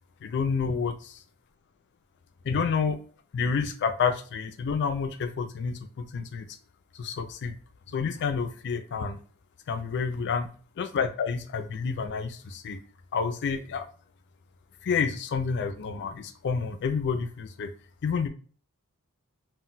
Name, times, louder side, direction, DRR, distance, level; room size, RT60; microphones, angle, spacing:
voice 1, 0.2-0.9 2.4-3.0 3.3-6.5 6.9-7.5 7.9-9.2 9.7-10.5 10.8-12.8 13.1-13.9 14.8-17.7 18.0-18.3, left 5 dB, 50° left, 7 dB, 0.4 m, -29 dB
2.2 x 2.1 x 3.8 m, 0.41 s
head